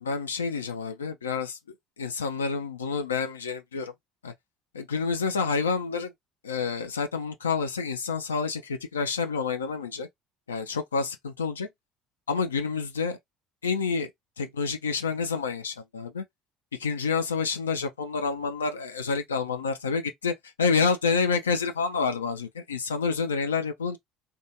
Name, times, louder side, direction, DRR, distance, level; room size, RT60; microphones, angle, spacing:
voice 1, 0.0-1.6 2.0-3.9 4.2-4.3 4.7-6.1 6.4-10.1 10.5-11.7 12.3-13.2 13.6-14.1 14.4-16.2 16.8-24.0, left 5 dB, 85° left, 0.3 m, -28 dB
2.5 x 2.2 x 2.7 m
figure-of-eight pair, 60°, 0 cm